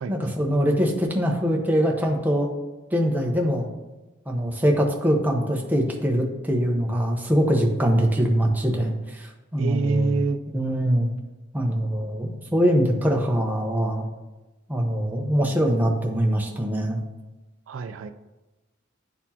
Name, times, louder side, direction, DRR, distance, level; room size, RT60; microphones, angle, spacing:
voice 1, 0.1-2.5 2.9-3.7 4.3-9.3 9.5-10.2 10.5-11.1 11.5-14.1 14.7-17.0, equal, 10° right, 0 dB, 0.8 m, -23 dB
voice 2, 9.6-10.4 17.7-18.1, right 4 dB, 75° right, 9 dB, 0.3 m, -25 dB
10.0 x 4.2 x 2.8 m, 1.1 s
head